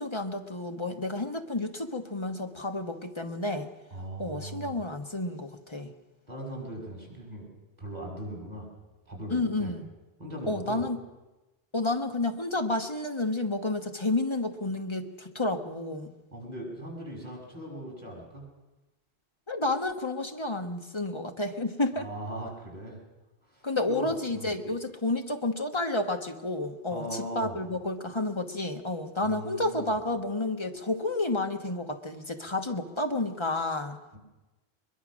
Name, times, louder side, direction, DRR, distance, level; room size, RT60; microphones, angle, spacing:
voice 1, 0.0-3.7 4.2-5.9 9.3-9.9 10.5-11.0 11.7-16.1 19.5-22.1 23.6-34.0, left 2 dB, 25° left, 6 dB, 1.3 m, -30 dB
voice 2, 3.9-4.8 6.3-7.5 7.8-8.7 9.1-9.7 10.2-10.8 16.3-18.4 21.9-23.0 23.5-24.5 26.9-27.6 29.2-29.9 34.1-34.2, right 1 dB, 40° right, -1 dB, 6.3 m, -39 dB
22.0 x 22.0 x 6.3 m, 1.1 s
omnidirectional pair, 1.1 m